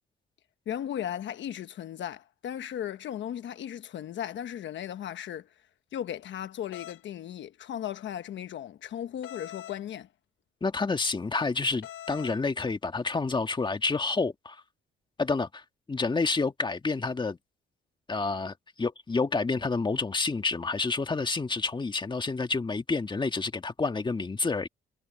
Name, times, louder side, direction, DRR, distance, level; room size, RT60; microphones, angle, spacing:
voice 1, 0.7-5.5 5.9-10.1, left 10 dB, 70° left, 1.1 m, -36 dB
sound 1, 6.7-7.0 9.2-9.8 11.8-12.4, left 12 dB, 90° left, 2.3 m, -43 dB
voice 2, 10.6-14.6 15.2-15.6 15.9-17.4 18.1-24.7, left 3 dB, 25° left, 1.8 m, -29 dB
cardioid pair, 90°, 20 cm